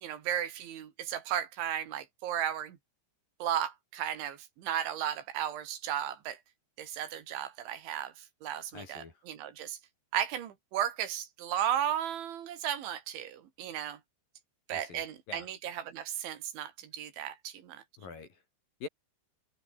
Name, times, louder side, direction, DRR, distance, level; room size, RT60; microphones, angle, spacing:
voice 1, 0.0-2.8 3.4-6.4 6.8-8.1 8.4-9.8 10.1-14.0 14.7-17.8, right 10 dB, 80° right, 4.8 m, -35 dB
voice 2, 8.7-9.1 14.7-15.5 18.0-18.4 18.8-18.9, left 5 dB, 50° left, 6.0 m, -45 dB
omnidirectional pair, 5.3 m